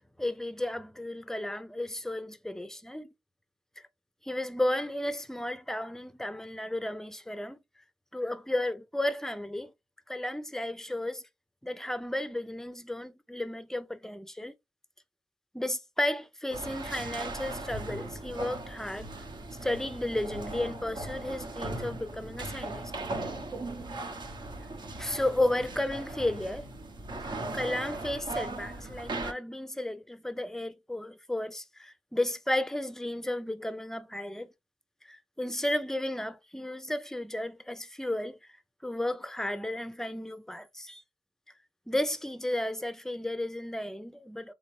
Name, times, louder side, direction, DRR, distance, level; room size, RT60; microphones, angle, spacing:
voice 1, 0.2-3.1 4.2-7.6 8.1-9.7 10.1-11.2 11.6-14.5 15.5-19.1 19.6-22.9 25.0-26.7 27.5-34.5 35.0-38.4 38.8-41.0 41.9-44.5, left 1 dB, 5° left, 0.5 m, -33 dB
sound 1, 16.5-29.3, right 2 dB, 60° right, 0.9 m, -38 dB
3.9 x 3.5 x 3.2 m
cardioid pair, 75°, 9 cm